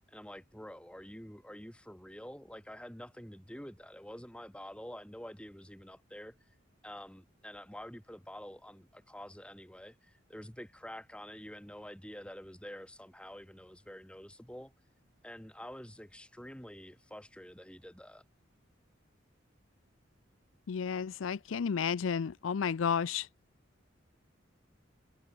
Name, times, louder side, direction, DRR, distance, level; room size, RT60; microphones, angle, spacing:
voice 1, 0.1-6.4 6.8-14.7 15.2-18.2, equal, 5° left, 4.2 m, -48 dB
voice 2, 20.7-23.3, left 6 dB, 85° left, 0.4 m, -32 dB
head